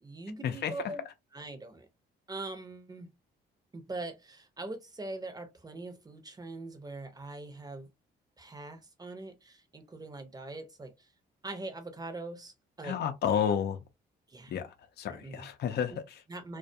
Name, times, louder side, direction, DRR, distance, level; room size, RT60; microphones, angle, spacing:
voice 1, 0.0-1.0 1.3-1.9 2.3-3.1 3.7-7.9 8.4-11.1 11.4-13.0 14.3-14.6 15.1-15.5 15.9-16.0 16.3-16.6, right 2 dB, 20° right, 0.7 m, -42 dB
voice 2, 12.8-13.8 14.5-16.2, left 8 dB, 55° left, 0.5 m, -31 dB
2.2 x 2.2 x 2.7 m
cardioid pair, 90°, 20 cm